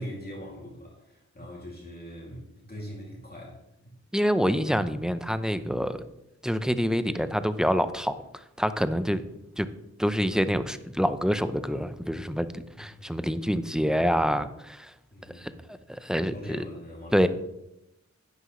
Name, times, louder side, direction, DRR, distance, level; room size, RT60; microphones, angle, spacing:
voice 1, 0.0-3.9 12.8-13.0 15.1-15.6 16.3-17.3, equal, 30° left, -4 dB, 2.5 m, -41 dB
voice 2, 4.1-6.0 6.4-8.2 8.6-9.2 9.6-9.7 10.0-14.9 15.4-15.5 15.9-16.6 17.1-17.3, equal, ahead, 11 dB, 0.6 m, -26 dB
11.0 x 9.7 x 3.2 m, 0.87 s
wide cardioid pair, 80°, 30 cm